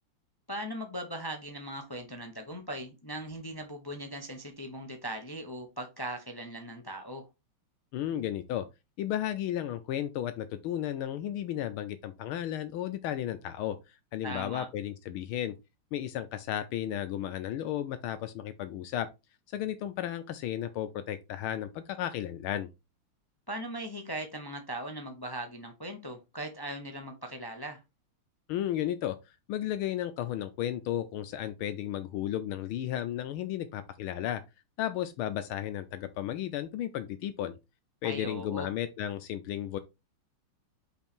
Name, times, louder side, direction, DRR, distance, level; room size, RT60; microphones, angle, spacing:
voice 1, 0.5-7.2 14.2-14.7 23.5-27.8 38.0-38.7, right 1 dB, 35° left, 0.3 m, -39 dB
voice 2, 7.9-8.7 9.0-13.8 14.1-15.5 15.9-19.1 19.5-22.7 28.5-29.2 29.5-34.4 34.8-37.6 38.0-39.8, left 11 dB, 80° left, 1.5 m, -34 dB
5.7 x 4.7 x 4.4 m
omnidirectional pair, 2.4 m